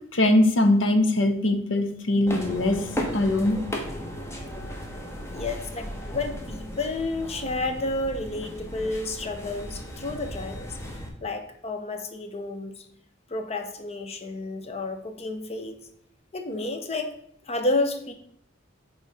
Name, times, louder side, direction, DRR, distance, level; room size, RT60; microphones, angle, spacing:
voice 1, 0.1-2.9 3.1-3.6, left 1 dB, 80° left, 7 dB, 0.8 m, -21 dB
sound 1, 2.3-11.1, equal, 15° left, 0.9 m, -35 dB
voice 2, 5.3-10.7 11.2-12.7 13.3-15.8 16.3-17.2 17.5-18.1, left 2 dB, 35° left, 6 dB, 0.7 m, -30 dB
8.6 x 3.1 x 4.1 m, 0.69 s
head